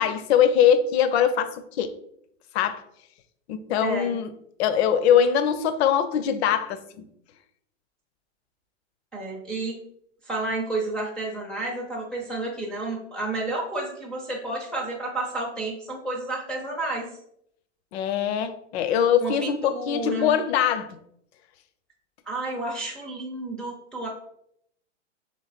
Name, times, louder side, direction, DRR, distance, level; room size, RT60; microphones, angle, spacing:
voice 1, 0.0-1.9 2.5-2.8 3.5-4.3 4.6-7.0 17.9-21.0, left 8 dB, 60° left, 11 dB, 0.6 m, -22 dB
voice 2, 3.8-4.2 9.1-9.8 10.2-17.1 19.2-20.4 22.3-24.1, right 2 dB, ahead, -4 dB, 0.5 m, -31 dB
3.2 x 3.1 x 4.1 m, 0.73 s
hypercardioid pair, 130°, 37 cm